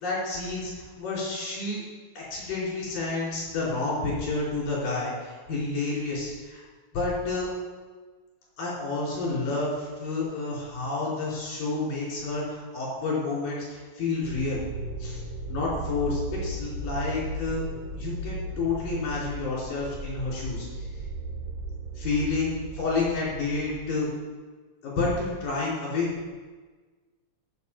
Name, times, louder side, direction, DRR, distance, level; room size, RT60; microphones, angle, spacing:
voice 1, 0.0-1.8 2.2-6.6 6.9-7.5 8.6-14.6 15.0-15.2 15.5-17.7 17.9-20.8 22.0-24.1 24.8-26.1, left 3 dB, 65° left, -6 dB, 6.0 m, -30 dB
sound 1, 14.2-23.9, right 2 dB, 60° right, 3.4 m, -36 dB
12.5 x 8.0 x 5.6 m, 1.4 s
omnidirectional pair, 4.2 m